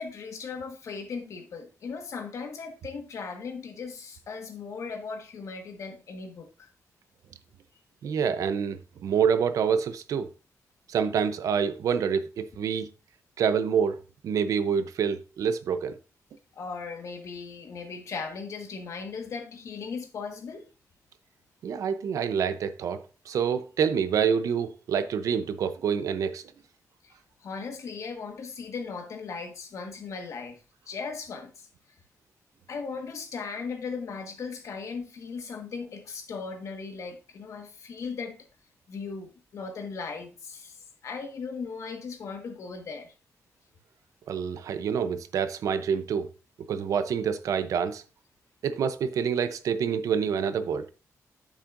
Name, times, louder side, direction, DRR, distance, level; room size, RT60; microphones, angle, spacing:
voice 1, 0.0-6.7 16.5-20.7 27.0-27.1 27.4-31.7 32.7-38.4 38.9-40.8 41.0-43.1, left 5 dB, 65° left, 1.6 m, -37 dB
voice 2, 8.0-10.3 10.9-12.9 13.4-14.0 14.2-16.0 21.6-26.4 44.3-46.3 46.7-48.0 48.6-50.9, right 7 dB, 85° right, 0.7 m, -27 dB
9.0 x 7.4 x 2.6 m
wide cardioid pair, 125°, 6 cm